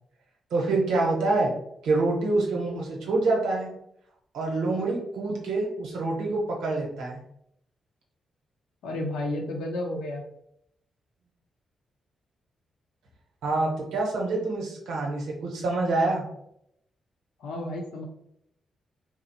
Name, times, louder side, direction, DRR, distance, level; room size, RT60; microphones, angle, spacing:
voice 1, 0.5-1.5 1.8-3.7 4.3-7.2 13.4-16.2, right 2 dB, 80° right, -1 dB, 0.9 m, -26 dB
voice 2, 8.8-10.2 17.4-18.0, left 1 dB, 80° left, 1 dB, 0.6 m, -32 dB
2.7 x 2.0 x 4.0 m, 0.75 s
hypercardioid pair, 45°, 0 cm